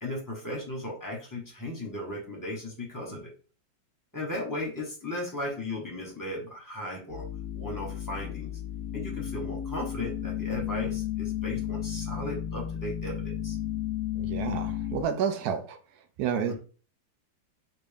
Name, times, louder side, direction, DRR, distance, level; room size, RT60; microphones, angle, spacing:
voice 1, 0.0-3.3 4.1-7.3 7.5-8.5 8.9-13.6 16.5-16.6, left 1 dB, 15° left, 0.8 m, -36 dB
sound 1, 7.1-15.0, left 11 dB, 80° left, 0.7 m, -33 dB
voice 2, 14.2-15.8 16.2-16.6, right 7 dB, 70° right, 0.9 m, -30 dB
3.4 x 2.6 x 3.4 m
omnidirectional pair, 2.1 m